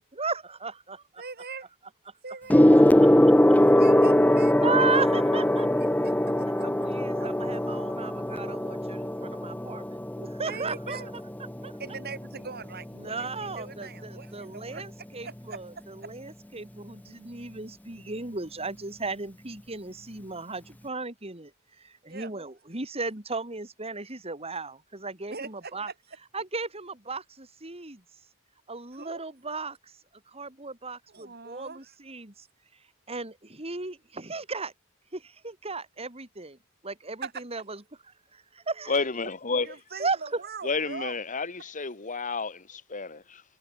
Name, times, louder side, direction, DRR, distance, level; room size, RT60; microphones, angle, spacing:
voice 1, 0.0-1.2 4.6-5.7 6.6-11.0 11.6-11.7 13.0-21.5 21.8-25.9 26.3-28.0 28.7-30.0 30.3-32.5 33.1-34.7 35.1-36.6 36.8-37.8 38.3-39.0 40.0-40.4, right 4 dB, 30° right, 3.9 m, -35 dB
voice 2, 1.2-1.7 2.2-2.7 3.6-5.1 6.0-6.9 7.1-7.8 10.4-11.1 11.8-16.3 22.1-22.3 25.3-25.9 28.9-29.2 31.1-31.9 37.2-37.3 39.6-41.2, right 4 dB, 50° right, 4.2 m, -42 dB
Gong, 2.5-12.3 13.2-13.5, left 1 dB, 10° left, 1.0 m, -22 dB
voice 3, 38.9-39.8 40.6-43.4, left 4 dB, 40° left, 1.6 m, -31 dB
head